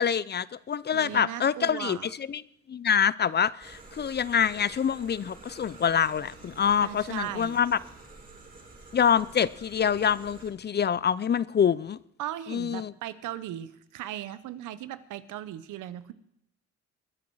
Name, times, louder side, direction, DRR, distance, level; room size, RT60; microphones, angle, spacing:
voice 1, 0.0-2.0 2.3-2.4 2.7-7.8 8.9-12.0 12.5-12.9, left 8 dB, 35° left, 20 dB, 0.5 m, -26 dB
voice 2, 0.9-2.1 6.8-7.6 12.2-16.1, right 12 dB, 85° right, 15 dB, 1.0 m, -37 dB
sound 1, 3.6-10.5, right 3 dB, 30° right, 4.3 m, -49 dB
22.0 x 8.7 x 4.7 m, 0.75 s
cardioid pair, 90°, 30 cm